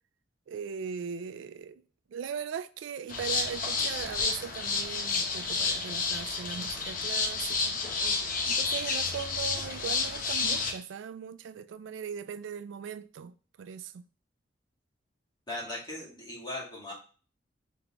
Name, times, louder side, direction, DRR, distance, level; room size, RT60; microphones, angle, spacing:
voice 1, 0.5-1.8 2.1-7.7 8.5-13.3 13.6-14.0, right 7 dB, 85° right, 0.3 m, -39 dB
sound 1, 3.1-10.7, left 4 dB, 50° left, 0.8 m, -30 dB
voice 2, 15.5-16.9, left 1 dB, 25° left, 1.9 m, -38 dB
3.7 x 3.5 x 2.9 m
head